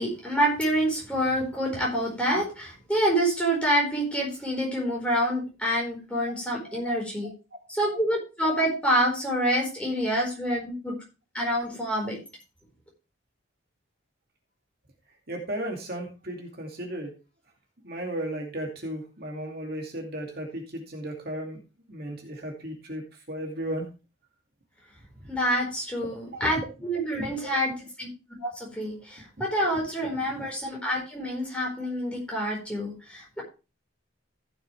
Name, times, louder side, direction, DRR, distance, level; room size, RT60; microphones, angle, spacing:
voice 1, 0.0-7.3 7.7-10.9 11.3-12.2 25.3-27.7 28.0-28.1 28.4-33.4, equal, 5° left, -2 dB, 4.5 m, -27 dB
voice 2, 15.3-17.1 17.8-21.6 21.9-23.0 23.3-23.8 26.0-26.6 27.2-27.5, right 1 dB, 50° right, 2 dB, 2.4 m, -35 dB
15.5 x 7.0 x 3.2 m, 0.30 s
head